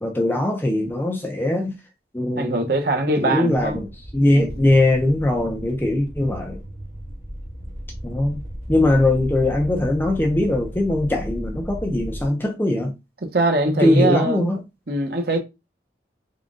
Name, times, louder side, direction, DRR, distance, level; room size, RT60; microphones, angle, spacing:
voice 1, 0.0-1.8 2.1-2.7 3.2-6.6 8.0-8.4 8.7-12.9 13.7-14.6, left 1 dB, 10° left, 0.5 m, -21 dB
voice 2, 2.4-3.8 4.3-4.5 13.3-14.4 14.9-15.4, right 2 dB, 55° right, 0.8 m, -22 dB
sound 1, 3.5-12.3, equal, 35° right, 1.2 m, -35 dB
3.7 x 2.3 x 3.6 m
head